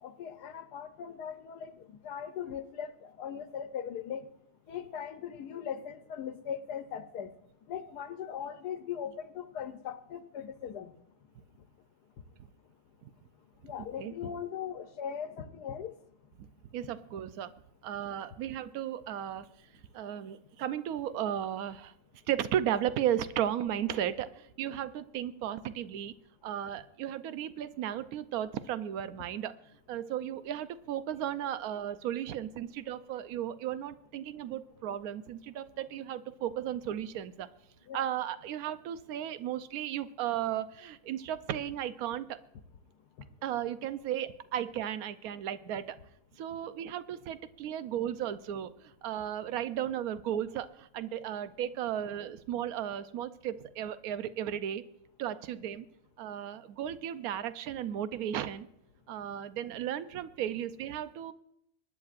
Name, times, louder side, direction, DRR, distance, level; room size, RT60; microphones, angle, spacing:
voice 1, 0.0-1.7 2.0-4.2 4.7-7.3 7.7-10.9 13.6-15.9 37.9-38.0, left 8 dB, 90° left, 9 dB, 1.3 m, -39 dB
voice 2, 16.7-17.5 17.8-19.5 19.9-21.9 22.3-26.1 26.4-29.6 29.9-37.5 37.9-42.4 43.4-46.0 46.4-54.8 55.2-55.9 56.2-58.7 59.1-61.3, right 10 dB, 70° right, 13 dB, 1.1 m, -35 dB
25.0 x 10.5 x 2.5 m, 0.77 s
omnidirectional pair, 1.7 m